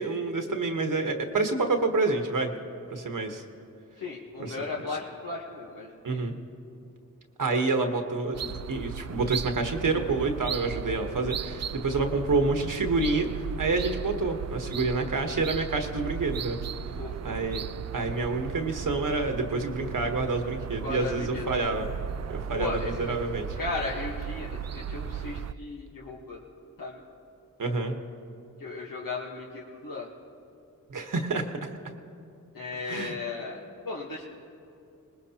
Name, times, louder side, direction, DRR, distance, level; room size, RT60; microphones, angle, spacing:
voice 1, 0.0-2.5 2.9-3.4 4.4-4.6 6.0-6.3 7.4-13.3 13.6-16.6 17.2-17.6 17.9-21.9 22.3-23.5 27.6-28.0 30.9-31.5 32.9-33.1, right 3 dB, 65° right, 5 dB, 1.3 m, -28 dB
voice 2, 4.0-6.3 17.0-17.1 20.8-21.4 22.6-22.9 23.6-26.4 26.8-27.0 28.6-30.1 32.5-34.3, left 3 dB, 75° left, -3 dB, 1.4 m, -36 dB
sound 1, 8.3-25.5, right 8 dB, 50° right, 0.4 m, -36 dB
21.0 x 20.0 x 2.9 m, 2.6 s
cardioid pair, 50°, 34 cm